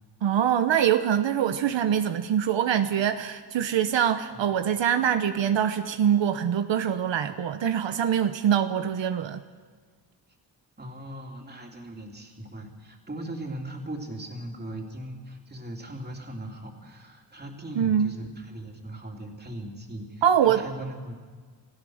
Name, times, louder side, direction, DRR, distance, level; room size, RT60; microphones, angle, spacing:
voice 1, 0.2-9.4 17.8-18.1 20.2-20.6, right 9 dB, 80° right, 8 dB, 1.0 m, -24 dB
voice 2, 10.8-21.2, right 1 dB, 20° right, 1 dB, 3.3 m, -39 dB
29.0 x 15.5 x 6.5 m, 1.5 s
wide cardioid pair, 135°, 44 cm